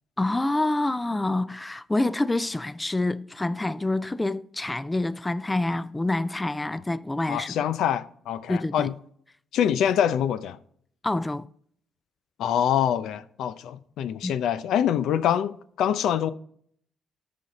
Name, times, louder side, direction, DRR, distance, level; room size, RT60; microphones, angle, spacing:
voice 1, 0.2-7.6 8.5-8.9 11.0-11.5 14.2-14.3, left 2 dB, 15° left, 0.4 m, -27 dB
voice 2, 7.3-8.9 9.5-10.6 12.4-16.3, left 9 dB, 80° left, 0.6 m, -25 dB
13.0 x 5.1 x 4.1 m
cardioid pair, 90°, 0 cm